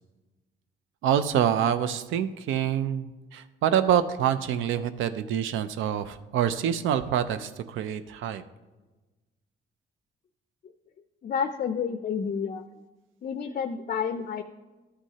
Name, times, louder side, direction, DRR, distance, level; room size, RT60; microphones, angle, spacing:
voice 1, 1.0-8.4, right 9 dB, 80° right, 11 dB, 0.4 m, -26 dB
voice 2, 11.2-12.7 13.2-14.4, left 6 dB, 40° left, 10 dB, 0.4 m, -30 dB
12.5 x 6.2 x 2.8 m, 1.2 s
cardioid pair, 90°, 20 cm